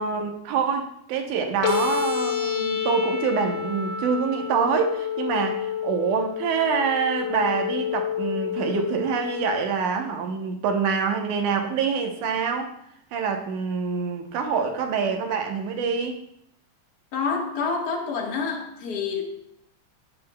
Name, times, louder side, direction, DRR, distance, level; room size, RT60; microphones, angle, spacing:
voice 1, 0.0-12.7 13.1-16.2, right 5 dB, 80° right, 4 dB, 2.4 m, -26 dB
sound 1, 1.6-9.6, left 8 dB, 85° left, 2.6 m, -29 dB
voice 2, 17.1-19.2, left 5 dB, 45° left, 1 dB, 1.4 m, -27 dB
16.0 x 7.6 x 2.2 m, 0.75 s
omnidirectional pair, 3.5 m